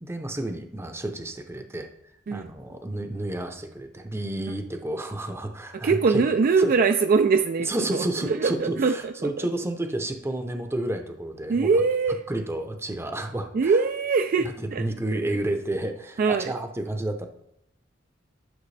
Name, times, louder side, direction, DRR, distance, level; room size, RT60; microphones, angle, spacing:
voice 1, 0.0-1.9 2.3-6.3 6.6-6.8 7.6-11.8 12.3-13.8 14.4-17.3, right 1 dB, 15° right, 6 dB, 0.7 m, -30 dB
voice 2, 5.8-9.3 11.5-12.2 13.5-14.8 16.2-16.5, right 4 dB, 50° right, 8 dB, 0.3 m, -22 dB
11.0 x 5.9 x 3.3 m, 0.80 s
head